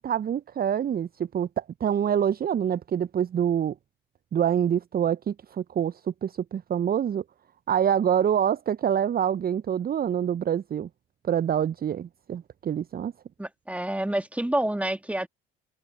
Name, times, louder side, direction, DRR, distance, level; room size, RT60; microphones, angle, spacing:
voice 1, 0.0-3.7 4.3-7.2 7.7-10.9 11.2-13.1, right 9 dB, 30° right, 0.8 m, -26 dB
voice 2, 13.4-15.3, right 1 dB, 5° right, 2.2 m, -28 dB
figure-of-eight pair, 55°, 29 cm